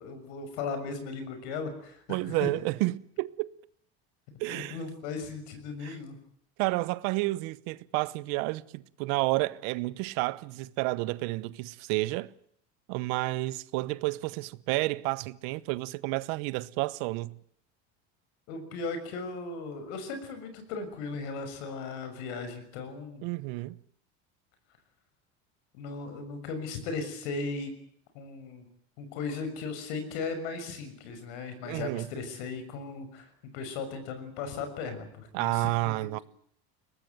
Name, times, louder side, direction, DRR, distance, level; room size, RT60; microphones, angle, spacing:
voice 1, 0.0-2.0 2.3-2.5 4.5-6.2 18.5-23.3 25.7-27.7 28.1-28.7 29.0-35.7 36.0-36.2, left 4 dB, 85° left, 6.4 m, -37 dB
voice 2, 2.1-3.5 4.4-4.8 5.8-6.0 6.6-12.3 12.9-17.3 23.2-23.8 31.6-32.1 35.3-36.2, right 21 dB, 75° right, 1.1 m, -30 dB
23.0 x 19.0 x 9.2 m
cardioid pair, 135°, 33 cm